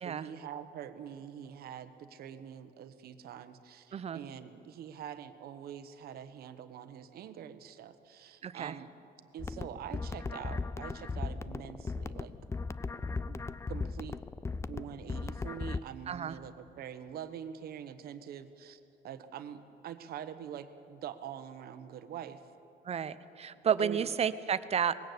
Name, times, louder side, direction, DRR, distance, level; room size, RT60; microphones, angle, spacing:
voice 1, 0.0-8.9 9.3-12.3 13.3-14.2 14.7-22.4 23.8-24.1, right 9 dB, 65° right, 10 dB, 1.3 m, -45 dB
voice 2, 8.4-8.8 16.1-16.4 22.8-24.9, right 8 dB, 40° right, 14 dB, 0.8 m, -31 dB
sound 1, 9.4-15.8, left 4 dB, 15° left, 0.4 m, -37 dB
20.5 x 16.5 x 8.1 m, 2.9 s
cardioid pair, 110°, 17 cm